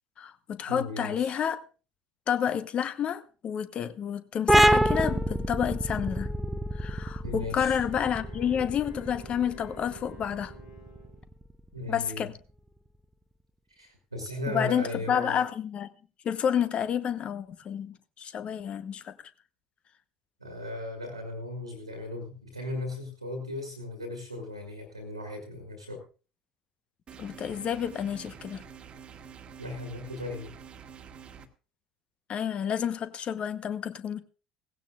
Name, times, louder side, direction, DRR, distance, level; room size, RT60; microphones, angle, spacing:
voice 1, 0.2-1.6 2.3-6.3 6.7-10.5 11.9-12.3 14.5-15.9 16.2-19.1 27.2-28.6 32.3-34.2, left 8 dB, 40° left, 1.0 m, -30 dB
voice 2, 0.7-1.3 7.2-7.8 11.7-12.3 13.7-15.4 20.4-26.0 29.6-30.5, left 2 dB, 90° right, 1.9 m, -37 dB
sound 1, 4.5-11.8, right 1 dB, 5° right, 0.8 m, -27 dB
Wind instrument woodwind instrument, 7.5-11.3, right 5 dB, 80° left, 5.2 m, -51 dB
sound 2, 27.1-31.5, right 7 dB, 35° right, 1.4 m, -47 dB
18.0 x 16.0 x 2.4 m
figure-of-eight pair, 60°, 3 cm